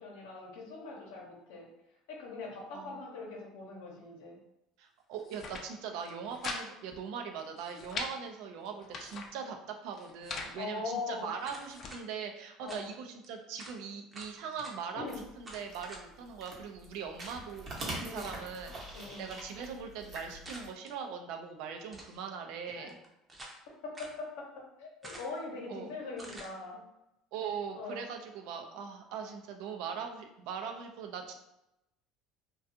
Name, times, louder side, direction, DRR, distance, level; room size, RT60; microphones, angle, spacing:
voice 1, 0.0-1.7 2.1-4.4 10.5-11.3 12.6-12.9 14.9-15.2 18.0-18.4 18.9-19.3 22.7-22.9 23.8-24.5 24.8-26.8 27.7-28.0, left 3 dB, 90° left, -1 dB, 0.8 m, -41 dB
voice 2, 4.8-15.1 15.4-23.0 25.7-25.9 27.3-31.3, right 6 dB, 75° right, 4 dB, 0.4 m, -41 dB
sound 1, 5.1-5.6 6.0-6.6 6.9-7.0 7.4-8.1 8.7-9.3 9.9-10.5 11.2-11.9, left 4 dB, 45° left, 0.4 m, -41 dB
sound 2, 11.4-12.0 12.7-12.9 13.2-13.3 13.6-13.8 14.1-14.8 15.4-16.0 16.4-16.5 17.2-17.4 17.8-18.1 20.5-20.9 21.8-22.2 22.9-23.6 23.9-24.2 25.0-25.5 26.2-26.5, right 1 dB, 20° right, 0.6 m, -48 dB
sound 3, 15.1-20.7, right 1 dB, 50° right, 0.8 m, -44 dB
2.4 x 2.3 x 2.6 m, 0.88 s
supercardioid pair, 110°, 0 cm